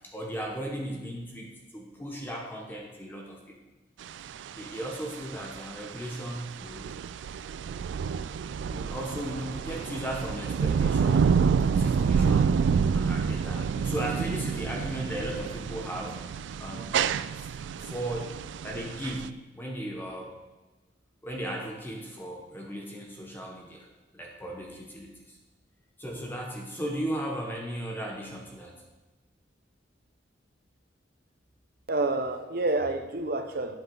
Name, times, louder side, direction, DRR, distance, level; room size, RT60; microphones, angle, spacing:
voice 1, 0.1-3.6 4.5-7.0 8.7-11.4 11.7-16.3 16.6-16.9 17.4-17.5 17.8-20.4 21.2-23.9 24.1-25.4 26.0-28.7, right 1 dB, 10° left, -1 dB, 1.1 m, -36 dB
sound 1, 4.0-19.3, right 6 dB, 70° right, 0.3 m, -28 dB
voice 2, 31.9-33.7, right 2 dB, 55° right, 7 dB, 0.8 m, -28 dB
9.3 x 8.0 x 3.9 m, 1.1 s
head